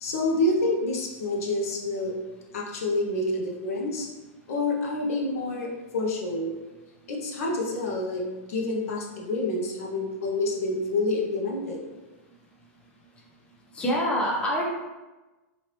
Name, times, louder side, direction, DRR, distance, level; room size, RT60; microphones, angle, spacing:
voice 1, 0.0-2.1 2.5-4.1 4.5-6.5 7.1-8.2 8.5-11.8, left 2 dB, 70° left, -1 dB, 0.8 m, -28 dB
voice 2, 13.8-14.6, equal, 15° left, -3 dB, 0.6 m, -25 dB
3.1 x 2.7 x 2.9 m, 1.1 s
hypercardioid pair, 140°, 8 cm